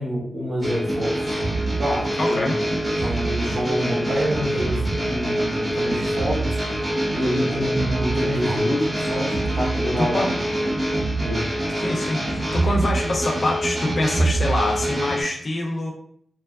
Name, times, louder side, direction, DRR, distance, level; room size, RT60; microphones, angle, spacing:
voice 1, 0.0-1.4 1.8-2.5 3.0-10.3 10.6-10.8 11.2-11.5, equal, 75° right, -4 dB, 0.9 m, -27 dB
sound 1, 0.6-15.2, right 1 dB, 25° right, 0.7 m, -25 dB
voice 2, 2.2-2.6 10.0-10.4 11.8-15.9, left 1 dB, 40° left, 1 dB, 0.5 m, -25 dB
2.8 x 2.3 x 2.3 m, 0.66 s
wide cardioid pair, 140°, 0 cm